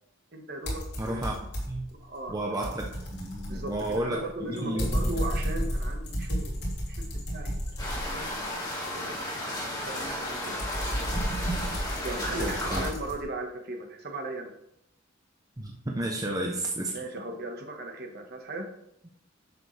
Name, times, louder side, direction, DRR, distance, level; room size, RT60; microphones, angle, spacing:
voice 1, 0.3-0.8 1.1-1.3 2.0-2.3 3.5-7.0 7.3-7.5 7.9-8.3 8.8-10.6 12.0-14.5 16.9-18.7, right 1 dB, 50° right, 3 dB, 1.5 m, -37 dB
sound 1, 0.7-1.9 2.3-8.5 10.0-13.2, equal, 55° left, 3.0 m, -32 dB
voice 2, 1.0-1.3 1.7-1.9 2.3-5.0 12.4-12.8 15.6-16.9, right 1 dB, 20° right, 0 dB, 0.7 m, -32 dB
sound 2, 7.8-12.9, left 1 dB, 20° left, 2.3 m, -34 dB
10.5 x 6.7 x 3.4 m, 0.78 s
head